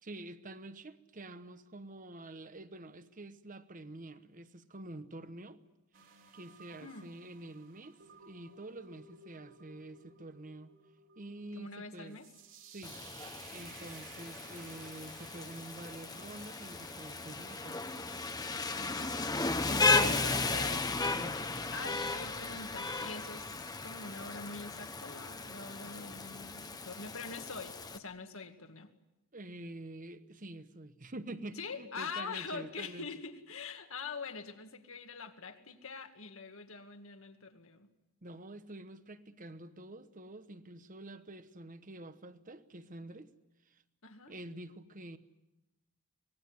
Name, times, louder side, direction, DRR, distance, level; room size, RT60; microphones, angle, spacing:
voice 1, 0.0-5.6 6.3-10.7 11.2-12.2 12.7-13.0 13.5-17.8 19.6-20.4 21.1-21.5 29.3-33.1 38.2-43.3 43.7-43.8 44.3-45.2, right 2 dB, 35° right, 1.2 m, -47 dB
sound 1, 5.9-23.5, right 5 dB, 55° right, 4.0 m, -58 dB
voice 2, 11.5-12.3 18.7-19.2 19.9-21.2 21.5-28.9 31.6-37.9 44.0-44.4, left 4 dB, 60° left, 2.1 m, -44 dB
Rain, 12.8-28.0, left 3 dB, 15° left, 1.1 m, -35 dB
25.0 x 20.0 x 9.7 m
head